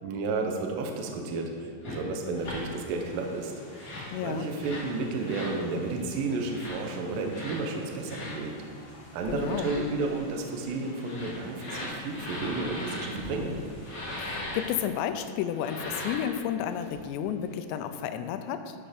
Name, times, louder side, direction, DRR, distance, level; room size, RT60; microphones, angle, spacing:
voice 1, 0.0-8.6 9.1-13.6, right 3 dB, 80° right, 2 dB, 2.0 m, -32 dB
sound 1, 1.8-2.0 2.4-2.6 3.7-4.1 4.6-4.9 5.2-5.6 6.4-6.8 7.3-7.6 8.1-8.4 9.3-9.8 10.9-13.1 13.8-14.6 15.5-16.3, left 1 dB, 30° left, 1.6 m, -38 dB
sound 2, 2.3-14.8, left 1 dB, 50° left, 2.1 m, -50 dB
voice 2, 4.1-4.5 9.3-9.7 14.2-18.8, left 9 dB, 90° left, 9 dB, 2.8 m, -32 dB
sound 3, 8.9-10.6 10.8-11.0 11.3-11.4 12.9-14.5 14.8-14.9 15.8-17.7, equal, 60° right, 4.7 m, -45 dB
11.0 x 6.5 x 5.1 m, 2.1 s
omnidirectional pair, 5.1 m